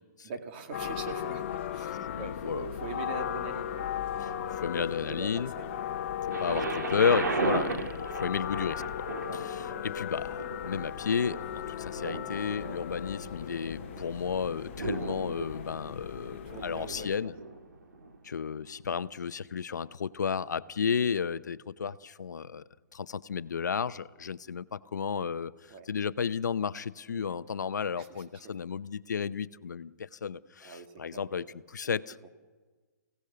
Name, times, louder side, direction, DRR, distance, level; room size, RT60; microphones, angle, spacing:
voice 1, 0.2-4.5 4.7-5.7 6.3-6.5 9.1-9.5 9.7-10.1 16.3-17.1 25.7-25.9 27.1-27.4 28.0-28.6 30.6-31.6 32.2-32.3, right 4 dB, 35° right, 2.3 m, -43 dB
sound 1, 0.7-17.2, left 10 dB, 40° left, 1.1 m, -37 dB
voice 2, 2.1-2.7 4.6-5.5 6.2-9.1 9.3-17.3 18.2-22.6 22.9-25.5 25.9-32.2, left 6 dB, 85° left, 0.8 m, -32 dB
Thunder, 6.3-18.2 18.9-19.0, right 4 dB, 85° right, 2.8 m, -37 dB
29.5 x 17.0 x 6.9 m
hypercardioid pair, 160°, 9 cm